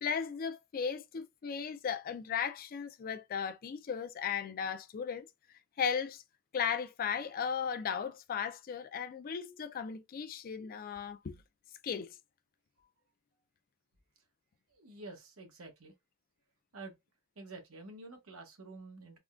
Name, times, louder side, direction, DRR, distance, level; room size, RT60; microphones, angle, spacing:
voice 1, 0.0-5.3 5.8-6.2 6.5-11.4 11.8-12.2, left 7 dB, 45° left, 0.4 m, -36 dB
voice 2, 14.7-15.9 16.7-16.9 17.4-19.2, right 3 dB, 85° right, 1.0 m, -49 dB
3.5 x 2.2 x 2.4 m
head